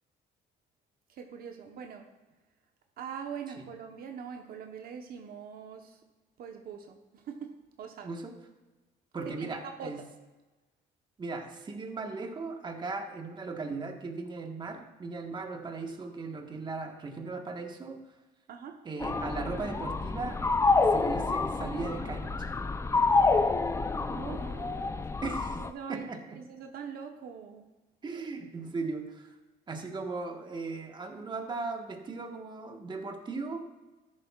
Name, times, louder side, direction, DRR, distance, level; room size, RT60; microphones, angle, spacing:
voice 1, 1.1-2.1 3.0-6.0 6.4-7.0 7.2-8.1 9.3-9.9 18.5-18.8 24.1-24.9 25.6-27.6, right 7 dB, 65° right, 3 dB, 1.0 m, -42 dB
voice 2, 8.0-8.4 9.1-10.0 11.2-18.1 18.8-20.4 20.9-22.6 25.2-25.6 25.9-26.4 28.0-29.3 29.7-33.7, right 3 dB, 25° right, 3 dB, 1.4 m, -37 dB
sound 1, 19.0-25.7, left 3 dB, 15° left, 0.5 m, -28 dB
13.5 x 11.0 x 2.4 m, 1.2 s
cardioid pair, 110°, 17 cm